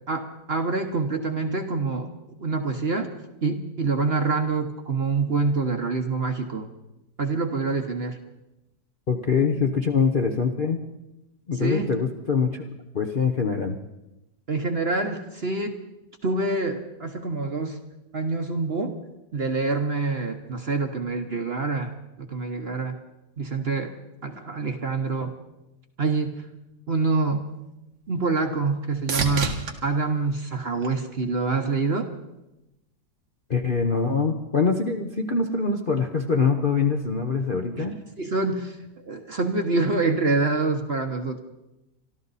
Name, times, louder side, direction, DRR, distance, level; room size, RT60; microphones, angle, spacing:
voice 1, 0.1-2.1 2.4-3.1 3.4-6.7 7.2-8.2 11.6-11.9 14.5-15.8 16.2-17.8 18.1-19.0 19.3-21.9 22.2-23.0 23.4-23.9 24.2-25.3 26.0-26.5 26.9-27.5 28.1-29.5 29.8-32.1 37.8-37.9 38.2-38.8 39.1-41.4, right 3 dB, 40° right, 6 dB, 1.1 m, -26 dB
voice 2, 9.1-10.8 11.5-12.6 12.9-13.8 33.5-38.0, left 5 dB, 40° left, 3 dB, 0.7 m, -24 dB
sound 1, 27.3-31.6 32.1-32.7 40.5-40.6, right 4 dB, 80° right, 2.2 m, -34 dB
25.0 x 13.5 x 4.1 m, 0.94 s
omnidirectional pair, 2.0 m